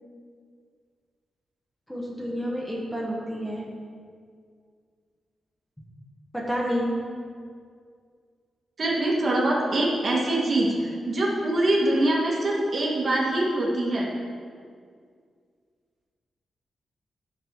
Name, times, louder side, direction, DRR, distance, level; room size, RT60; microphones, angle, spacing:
voice 1, 1.9-3.7 6.3-6.9, equal, 5° left, -3 dB, 1.4 m, -29 dB
voice 2, 8.8-14.1, right 1 dB, 40° right, -3 dB, 2.0 m, -24 dB
14.0 x 6.0 x 4.7 m, 2.1 s
wide cardioid pair, 140°, 0 cm